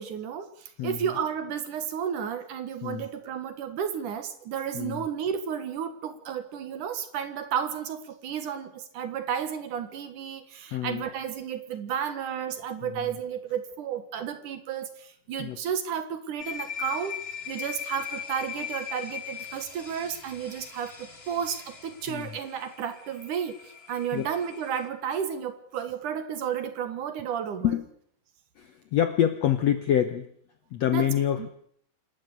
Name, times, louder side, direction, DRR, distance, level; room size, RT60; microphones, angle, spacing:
voice 1, 0.0-17.2 17.5-27.8 30.9-31.5, right 8 dB, 60° right, 10 dB, 2.8 m, -32 dB
voice 2, 10.7-11.0 12.8-13.1 15.4-15.6 22.1-22.3 24.1-24.3 27.6-27.9 28.6-30.3 30.7-31.5, left 10 dB, 70° left, 10 dB, 1.6 m, -26 dB
sound 1, 16.4-24.9, left 8 dB, 35° left, 0.9 m, -40 dB
27.5 x 12.5 x 8.3 m, 0.67 s
omnidirectional pair, 4.3 m